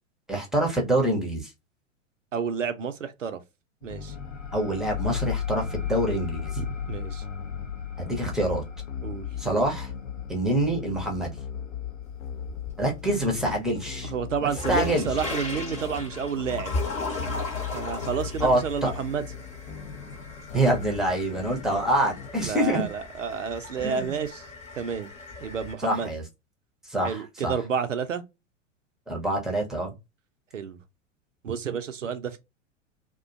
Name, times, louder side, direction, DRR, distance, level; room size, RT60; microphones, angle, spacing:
voice 1, 0.3-1.5 4.5-6.5 8.0-8.6 9.4-9.9 10.3-11.3 12.8-14.1 14.7-15.1 18.4-18.9 20.5-22.9 23.8-24.2 25.8-26.2 26.9-27.5 29.1-29.9, right 1 dB, ahead, 0.6 m, -26 dB
voice 2, 2.3-3.4 3.8-4.1 6.6-7.2 9.0-9.3 14.0-16.8 17.7-19.2 22.4-24.5 24.8-25.1 25.4-26.1 27.0-28.2 30.5-30.8 31.4-32.4, right 6 dB, 80° right, 0.5 m, -30 dB
sound 1, 3.8-22.3, left 8 dB, 60° left, 0.5 m, -38 dB
sound 2, 3.9-13.2, left 8 dB, 80° left, 0.9 m, -36 dB
sound 3, 12.0-13.0 13.4-25.7, left 3 dB, 20° left, 0.9 m, -37 dB
2.4 x 2.2 x 2.3 m
figure-of-eight pair, 95°, 38 cm